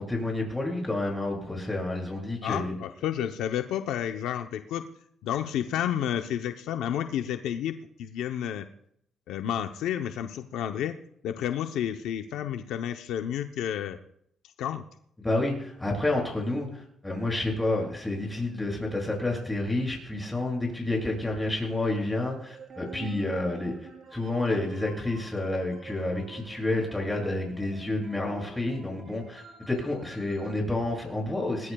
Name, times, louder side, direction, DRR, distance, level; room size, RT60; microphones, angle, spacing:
voice 1, 0.0-2.7 15.2-23.7 24.1-31.7, left 2 dB, 10° left, 0 dB, 7.6 m, -29 dB
voice 2, 2.4-4.9 5.2-8.7 9.3-11.0 11.2-14.0 14.6-14.9, left 10 dB, 85° left, 7 dB, 0.8 m, -31 dB
sound 1, 22.1-30.5, right 5 dB, 60° right, 4.1 m, -48 dB
21.0 x 18.5 x 2.3 m, 0.69 s
cardioid pair, 90°, 0 cm